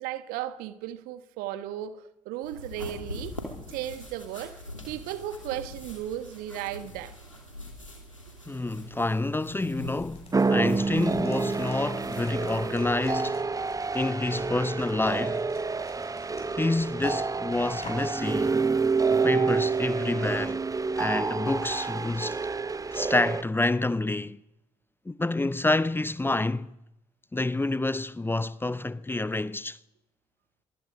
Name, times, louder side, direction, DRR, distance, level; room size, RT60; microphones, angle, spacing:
voice 1, 0.0-3.4 3.7-7.1, right 12 dB, 65° right, 1.3 m, -35 dB
sound 1, 2.4-13.3, left 1 dB, 90° left, 2.7 m, -44 dB
voice 2, 8.5-13.5 13.9-15.5 16.5-18.6 19.1-20.6 21.0-22.4 22.9-24.4 25.1-26.7 27.3-29.8, left 2 dB, 15° left, 0.7 m, -28 dB
sound 2, 9.9-18.2, left 4 dB, 40° left, 6.3 m, -52 dB
sound 3, 10.3-23.4, right 4 dB, 20° right, 0.9 m, -28 dB
24.0 x 23.5 x 5.1 m
figure-of-eight pair, 40°, 16 cm